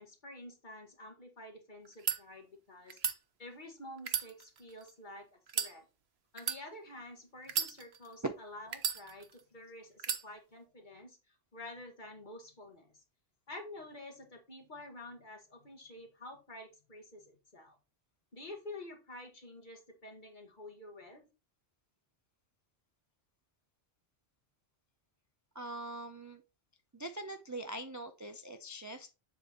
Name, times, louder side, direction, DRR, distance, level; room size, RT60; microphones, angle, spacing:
voice 1, 0.0-3.0 3.4-5.8 6.3-13.0 13.5-17.8 18.3-21.3, left 1 dB, 45° left, 3 dB, 1.8 m, -49 dB
sound 1, 1.8-2.2 2.9-3.2 4.0-4.9 5.5-5.7 6.4-6.6 7.4-8.1 8.7-9.4 10.0-10.2, right 7 dB, 70° right, 1.1 m, -34 dB
voice 2, 25.5-26.4 26.9-29.1, right 2 dB, 25° right, 7 dB, 0.4 m, -41 dB
7.4 x 6.1 x 2.9 m, 0.29 s
omnidirectional pair, 1.1 m